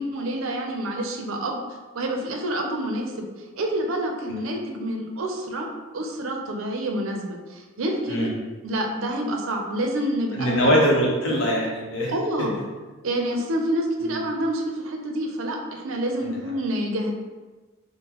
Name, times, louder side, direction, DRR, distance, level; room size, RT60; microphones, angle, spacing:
voice 1, 0.0-1.6 1.9-3.1 3.6-5.7 5.9-8.3 8.6-10.7 12.1-12.6 13.0-17.1, right 1 dB, 80° right, 2 dB, 0.5 m, -27 dB
voice 2, 10.3-12.1 14.0-14.2 16.2-16.3, equal, 65° left, -3 dB, 0.8 m, -22 dB
3.8 x 2.1 x 2.9 m, 1.3 s
head